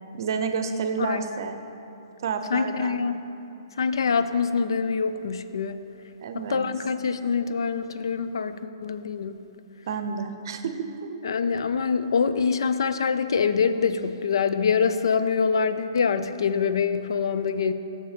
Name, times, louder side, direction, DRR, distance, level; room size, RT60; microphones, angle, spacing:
voice 1, 0.1-1.6 2.2-3.1 6.2-6.7 9.9-11.2, right 6 dB, 60° right, 8 dB, 0.6 m, -30 dB
voice 2, 2.5-3.2 3.8-5.8 6.3-9.4 11.2-17.7, left 5 dB, 80° left, 11 dB, 0.4 m, -25 dB
6.9 x 6.5 x 5.0 m, 2.8 s
hypercardioid pair, 155°, 2 cm